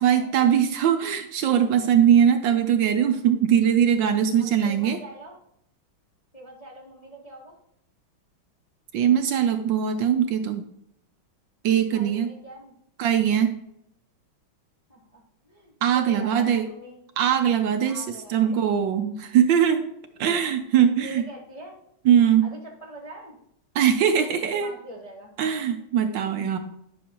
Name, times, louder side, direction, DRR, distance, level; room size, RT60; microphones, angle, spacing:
voice 1, 0.0-5.0 8.9-10.6 11.6-12.3 13.0-13.5 15.8-16.7 17.2-19.9 20.2-21.2 22.0-22.4 23.7-24.7 25.4-26.6, right 9 dB, 70° right, 8 dB, 1.2 m, -21 dB
voice 2, 4.4-5.4 6.3-7.5 11.9-12.7 14.9-17.0 17.8-18.7 20.2-20.6 20.8-21.8 22.4-23.4 24.1-25.3 25.8-26.0, right 1 dB, 25° left, -3 dB, 0.7 m, -44 dB
10.0 x 6.1 x 2.9 m, 0.78 s
omnidirectional pair, 2.3 m